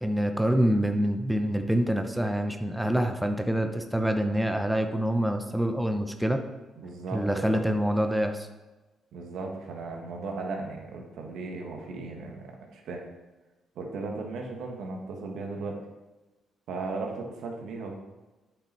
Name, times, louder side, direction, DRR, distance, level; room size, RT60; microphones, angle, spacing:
voice 1, 0.0-6.4 7.1-8.5, equal, 5° right, 5 dB, 0.7 m, -26 dB
voice 2, 6.8-7.8 9.1-13.0 13.7-15.8 16.7-17.9, right 3 dB, 80° right, 1 dB, 1.5 m, -36 dB
8.7 x 5.7 x 4.4 m, 1.1 s
cardioid pair, 90°, 0 cm